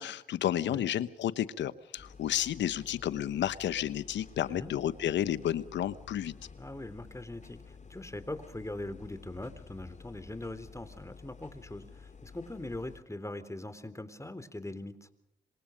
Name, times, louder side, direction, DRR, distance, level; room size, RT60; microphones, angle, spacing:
voice 1, 0.0-6.3, left 11 dB, 80° left, 16 dB, 1.0 m, -31 dB
sound 1, 2.0-13.0, left 5 dB, 40° left, 3.0 m, -52 dB
voice 2, 6.6-15.1, left 1 dB, 15° left, 12 dB, 3.6 m, -41 dB
27.0 x 24.5 x 5.2 m, 0.81 s
supercardioid pair, 40°, 18 cm